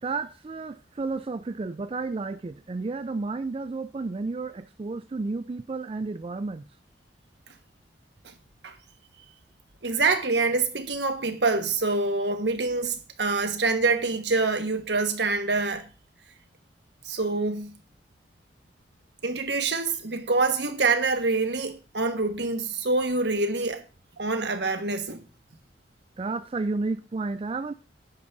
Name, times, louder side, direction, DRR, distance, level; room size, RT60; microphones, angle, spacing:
voice 1, 0.0-6.6 26.2-27.7, right 3 dB, 30° right, 0.3 m, -32 dB
voice 2, 9.8-15.8 17.0-17.7 19.2-23.8 24.2-25.2, right 3 dB, 75° right, 1.2 m, -26 dB
10.5 x 3.5 x 6.6 m
head